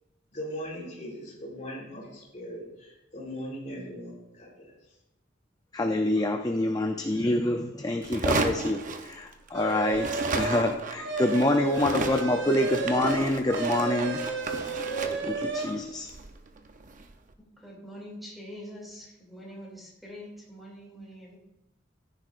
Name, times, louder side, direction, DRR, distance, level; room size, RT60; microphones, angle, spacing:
voice 1, 0.3-5.0, equal, 40° left, -3 dB, 3.7 m, -39 dB
voice 2, 5.7-14.2 15.2-16.1, left 1 dB, 20° left, 4 dB, 0.5 m, -27 dB
sound 1, 8.0-9.6 9.9-17.1, right 3 dB, 40° right, 0.7 m, -33 dB
sound 2, 9.5-10.6 11.0-15.8, right 4 dB, 60° right, 1.0 m, -32 dB
voice 3, 17.6-21.4, equal, ahead, -4 dB, 2.6 m, -44 dB
14.5 x 9.7 x 2.5 m, 0.95 s
head